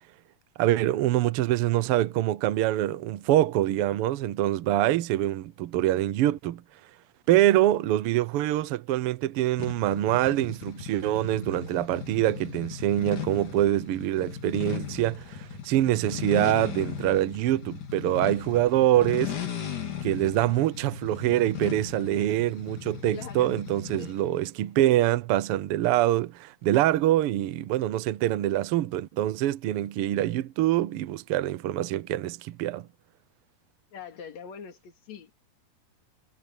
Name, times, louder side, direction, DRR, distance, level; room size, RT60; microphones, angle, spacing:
voice 1, 0.6-6.6 7.3-15.4 15.6-19.4 20.0-32.9, right 14 dB, 80° right, 1.3 m, -25 dB
sound 1, 9.6-24.3, left 8 dB, 80° left, 4.8 m, -37 dB
voice 2, 23.1-23.5 24.0-24.1 33.9-35.3, left 7 dB, 65° left, 3.3 m, -42 dB
omnidirectional pair, 3.6 m